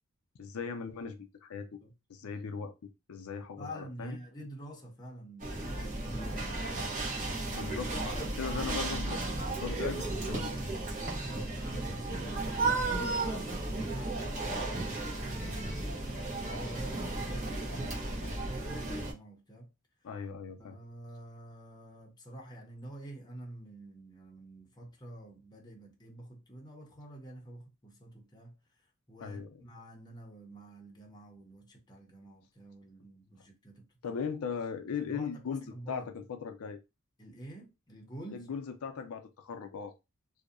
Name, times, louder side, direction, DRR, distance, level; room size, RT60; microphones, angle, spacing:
voice 1, 0.4-1.8 2.1-2.7 3.1-4.2 7.5-9.2 9.6-10.6 20.0-20.8 29.2-29.6 34.0-36.8 38.3-39.9, left 6 dB, 75° left, 0.4 m, -38 dB
voice 2, 3.6-7.5 10.9-15.6 16.4-19.7 20.5-28.6 29.1-34.2 35.0-36.1 37.2-38.5, right 1 dB, 20° left, 0.6 m, -48 dB
sound 1, 5.4-19.1, right 2 dB, 35° right, 0.8 m, -34 dB
2.6 x 2.1 x 2.4 m
head